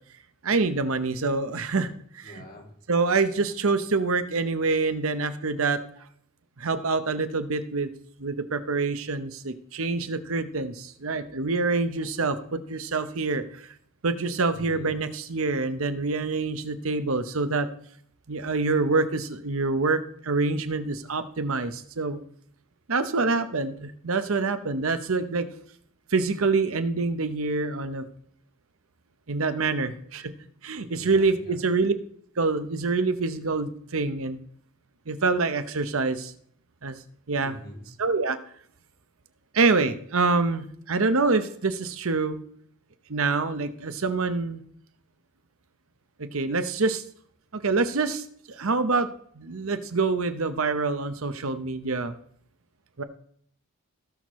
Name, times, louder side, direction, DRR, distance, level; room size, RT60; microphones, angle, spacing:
voice 1, 0.4-2.4 2.9-5.8 6.6-7.9 8.2-13.7 14.0-17.7 18.3-22.2 22.9-25.5 26.1-28.1 29.3-30.3 30.6-31.9 32.4-34.4 35.1-36.3 36.8-37.0 37.3-37.5 38.0-38.4 39.5-42.4 43.1-44.6 46.2-47.0 47.5-49.1 49.4-52.1 53.0-53.1, right 3 dB, 65° right, 10 dB, 0.9 m, -26 dB
voice 2, 2.2-2.8 14.5-15.0 29.8-29.9 31.0-31.7 37.4-37.9, left 1 dB, 40° left, -1 dB, 2.7 m, -45 dB
17.5 x 6.5 x 3.1 m, 0.62 s
head